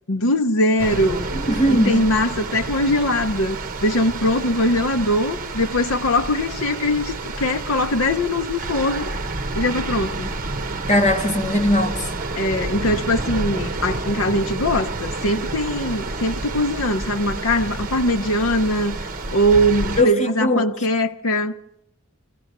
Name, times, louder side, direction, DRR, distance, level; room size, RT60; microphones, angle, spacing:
voice 1, 0.1-1.3 1.7-9.1 9.5-10.3 12.3-19.0 19.3-21.6, left 1 dB, 70° left, 0.8 m, -21 dB
sound 1, 0.8-20.0, right 3 dB, 40° right, 1.2 m, -29 dB
voice 2, 1.5-2.0 10.9-12.0 20.0-20.7, left 1 dB, 35° left, 2.8 m, -19 dB
24.5 x 16.5 x 6.7 m
head